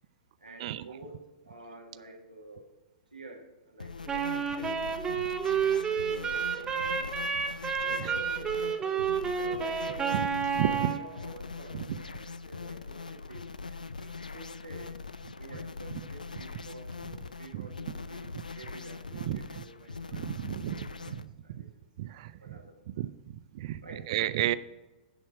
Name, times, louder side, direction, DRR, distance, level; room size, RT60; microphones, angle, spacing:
voice 1, 0.4-2.7 3.1-4.8 6.0-7.3 7.8-9.1 9.4-14.9 15.4-18.3 18.5-20.2 20.7-21.7 22.4-23.0 23.8-24.1, right 2 dB, 85° right, 1 dB, 1.4 m, -49 dB
sound 1, 3.8-21.3, left 4 dB, 80° left, 0.4 m, -42 dB
Wind instrument woodwind instrument, 4.1-11.0, right 6 dB, 15° right, 0.9 m, -30 dB
voice 2, 10.6-10.9 17.5-17.7 19.3-19.4 20.1-20.8 21.1-21.2 22.0-22.1 23.0-23.1 23.6-23.8 24.1-24.5, right 13 dB, 50° right, 16 dB, 0.4 m, -30 dB
10.5 x 4.4 x 6.5 m, 1.1 s
figure-of-eight pair, 105°, 4 cm